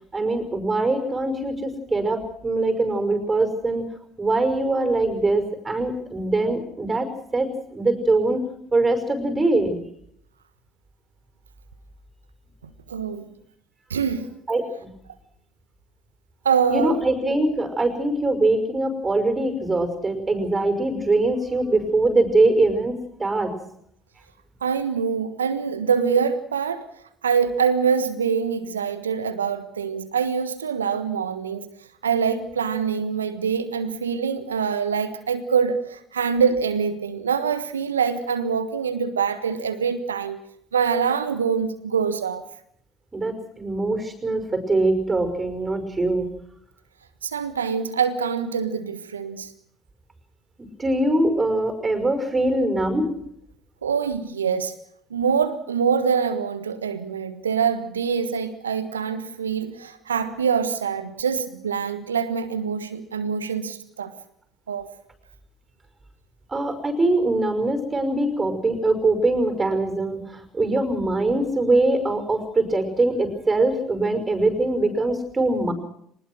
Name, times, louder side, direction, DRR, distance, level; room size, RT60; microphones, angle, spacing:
voice 1, 0.1-3.8 4.2-8.4 8.7-9.8 14.5-14.9 16.7-23.6 43.1-46.3 50.8-53.1 66.5-75.7, right 2 dB, 20° right, 8 dB, 5.7 m, -22 dB
voice 2, 12.9-13.3 13.9-14.3 16.4-17.0 24.6-26.8 27.2-31.7 32.0-40.4 40.7-42.4 47.2-49.5 53.8-54.7 55.1-64.1 64.7-64.9, right 6 dB, 85° right, 12 dB, 1.4 m, -24 dB
23.5 x 20.0 x 6.2 m, 0.71 s
figure-of-eight pair, 60°, 0 cm